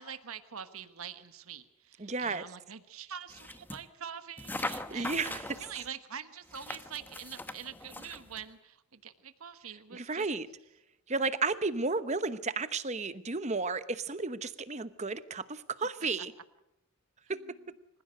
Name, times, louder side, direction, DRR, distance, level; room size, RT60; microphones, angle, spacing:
voice 1, 0.0-5.2 5.6-10.3 17.3-17.5, right 8 dB, 75° right, 10 dB, 1.2 m, -45 dB
voice 2, 2.0-2.4 4.9-5.6 9.9-10.5 11.1-16.3 17.3-17.4, right 3 dB, 30° right, 13 dB, 0.9 m, -33 dB
sound 1, 3.3-3.8 4.4-5.9 6.5-8.4, left 2 dB, 10° left, 0.9 m, -41 dB
27.0 x 15.5 x 6.5 m, 0.87 s
head